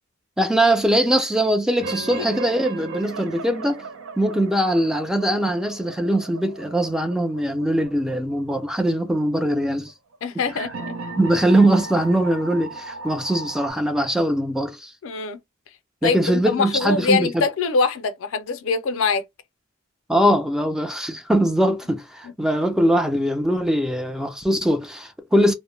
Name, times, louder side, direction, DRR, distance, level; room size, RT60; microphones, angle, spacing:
voice 1, 0.4-3.8 4.2-9.9 11.2-14.9 16.0-17.4 20.1-25.5, right 1 dB, 5° right, 0.3 m, -21 dB
sound 1, 1.8-13.7, right 3 dB, 75° right, 0.5 m, -36 dB
voice 2, 10.2-11.0 15.0-15.4 16.0-19.2 22.2-22.3, left 4 dB, 85° left, 0.4 m, -23 dB
2.1 x 2.0 x 3.1 m
head